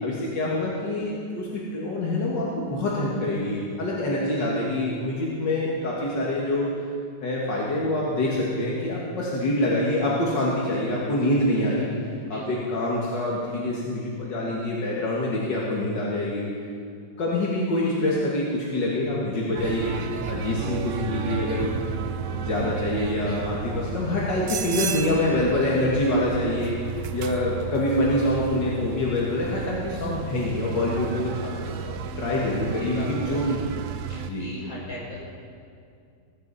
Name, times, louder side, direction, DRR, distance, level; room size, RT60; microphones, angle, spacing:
voice 1, 0.0-6.7 7.2-11.9 12.3-16.5 17.2-19.9 20.2-21.7 22.4-26.7 27.1-33.6 34.3-34.5, left 1 dB, 80° left, -5 dB, 2.5 m, -26 dB
voice 2, 12.3-12.6 32.5-33.8 34.1-35.2, left 1 dB, 50° left, -5 dB, 5.6 m, -39 dB
sound 1, 19.5-34.3, right 7 dB, 65° right, 0.8 m, -33 dB
19.5 x 14.5 x 4.2 m, 2.3 s
omnidirectional pair, 1.9 m